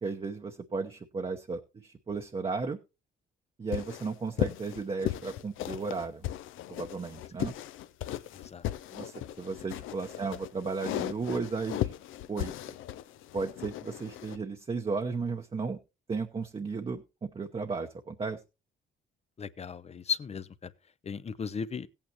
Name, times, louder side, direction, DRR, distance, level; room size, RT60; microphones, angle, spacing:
voice 1, 0.0-2.8 3.6-6.2 6.7-7.5 8.9-11.9 12.3-12.7 13.3-15.8 16.1-18.4, right 4 dB, 30° right, 0.9 m, -34 dB
sound 1, 3.7-14.4, left 13 dB, 85° left, 0.6 m, -36 dB
voice 2, 8.3-8.7 19.4-20.7 21.0-21.9, left 6 dB, 30° left, 0.6 m, -36 dB
16.5 x 8.8 x 2.9 m
cardioid pair, 90°, 20 cm